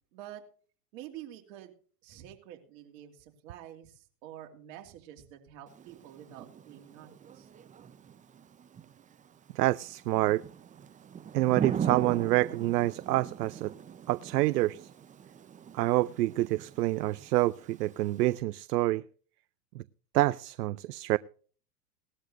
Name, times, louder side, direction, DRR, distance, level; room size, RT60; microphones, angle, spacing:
voice 1, 0.1-0.4 0.9-1.7 2.0-7.5, right 12 dB, 55° right, 3.0 m, -48 dB
Thunder / Rain, 5.7-18.4, right 8 dB, 15° right, 0.7 m, -41 dB
voice 2, 9.5-10.4 11.3-13.7 14.1-14.9 15.7-19.0 19.7-19.8 20.1-21.2, right 17 dB, 75° right, 0.6 m, -27 dB
18.5 x 13.0 x 2.6 m
hypercardioid pair, 110°, 49 cm